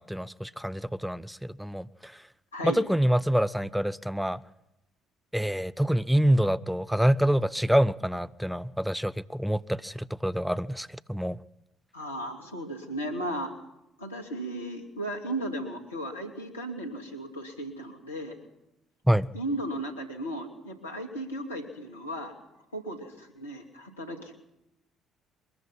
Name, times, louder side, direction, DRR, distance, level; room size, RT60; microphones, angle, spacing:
voice 1, 0.0-2.1 2.6-4.4 5.3-11.4 19.1-19.3, equal, 5° right, 0.7 m, -26 dB
voice 2, 2.5-2.8 11.9-13.5 14.0-18.4 19.3-22.4 22.7-24.3, right 1 dB, 90° left, 2.5 m, -35 dB
22.5 x 21.0 x 5.6 m
hypercardioid pair, 50°, 0 cm